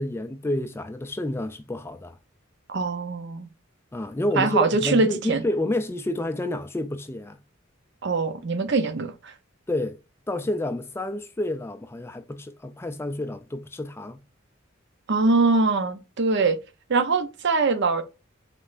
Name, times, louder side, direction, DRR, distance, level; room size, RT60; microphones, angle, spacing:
voice 1, 0.0-2.2 3.9-7.4 9.7-10.0 10.3-14.2, left 1 dB, 10° left, 0.3 m, -29 dB
voice 2, 2.7-3.5 4.4-5.4 8.0-9.3 15.1-16.6 16.9-18.0, right 3 dB, 60° right, 0.7 m, -23 dB
5.3 x 3.3 x 2.5 m
head